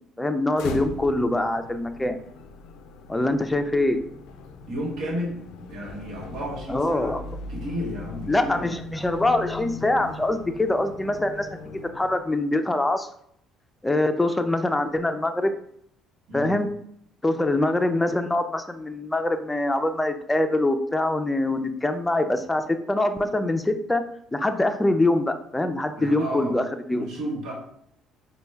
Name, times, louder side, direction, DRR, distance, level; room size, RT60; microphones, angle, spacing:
voice 1, 0.2-2.2 3.1-4.0 6.7-7.3 8.3-13.1 13.8-15.5 16.3-16.7 17.2-24.0 24.3-27.1, left 2 dB, 15° left, 7 dB, 0.5 m, -24 dB
sound 1, 0.5-12.5, left 4 dB, 75° left, 0.4 m, -40 dB
voice 2, 4.7-5.4 5.7-7.2 7.5-8.7 16.3-16.5 26.0-26.6 27.0-27.5, equal, 70° right, -1 dB, 1.2 m, -32 dB
4.3 x 2.2 x 3.3 m, 0.69 s
hypercardioid pair, 60°, 0 cm